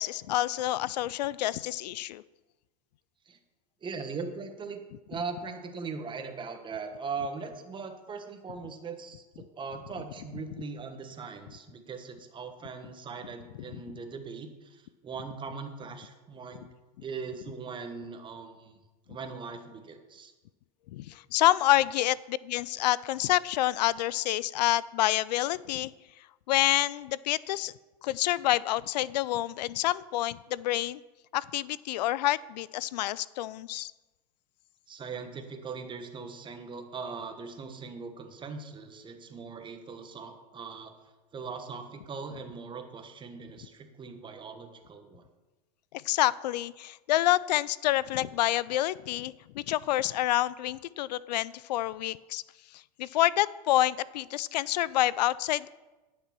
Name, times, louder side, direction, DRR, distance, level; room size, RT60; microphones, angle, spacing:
voice 1, 0.0-2.2 20.9-25.9 26.5-27.7 28.0-31.0 31.3-33.9 46.0-52.4 53.0-55.7, left 15 dB, 80° left, 21 dB, 0.4 m, -28 dB
voice 2, 3.8-4.8 5.1-16.7 17.0-18.8 19.1-20.3 34.9-40.9 41.3-45.2, right 5 dB, 20° right, 6 dB, 1.4 m, -40 dB
10.5 x 6.6 x 6.0 m, 1.2 s
hypercardioid pair, 115°, 21 cm